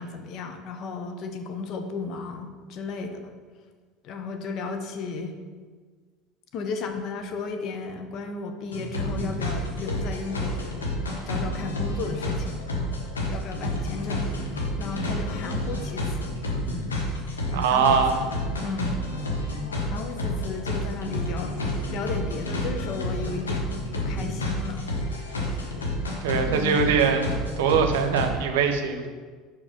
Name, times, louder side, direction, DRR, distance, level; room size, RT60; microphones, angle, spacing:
voice 1, 0.0-3.3 4.0-5.3 6.5-10.7 11.2-12.7 13.3-14.3 14.8-16.4 17.5-18.0 18.6-19.0 19.9-21.6 21.9-24.9 26.5-26.9, left 4 dB, 50° left, 5 dB, 0.8 m, -34 dB
sound 1, 8.7-28.3, left 1 dB, 85° left, 1.1 m, -30 dB
voice 2, 17.5-18.2 26.2-29.1, right 6 dB, 70° right, 6 dB, 0.7 m, -22 dB
5.5 x 5.0 x 5.0 m, 1.5 s
hypercardioid pair, 70°, 0 cm